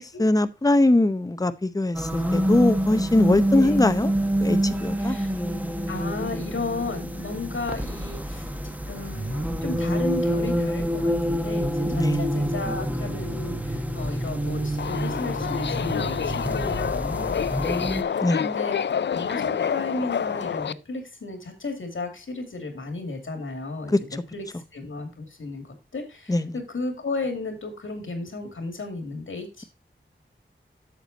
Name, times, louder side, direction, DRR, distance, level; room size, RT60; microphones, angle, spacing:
voice 1, 0.0-4.1 4.4-5.2 11.9-12.2 18.2-18.5 23.9-24.2 26.3-26.6, left 2 dB, 20° left, 0.7 m, -22 dB
sound 1, 1.9-18.0, equal, 10° right, 1.1 m, -27 dB
voice 2, 5.0-5.3 5.9-8.5 8.9-18.8 19.1-24.4 24.7-29.6, left 3 dB, 80° left, 2.4 m, -34 dB
Subway metro underground, 14.8-20.7, left 7 dB, 60° left, 0.4 m, -28 dB
8.2 x 6.8 x 4.0 m
wide cardioid pair, 50°, 20 cm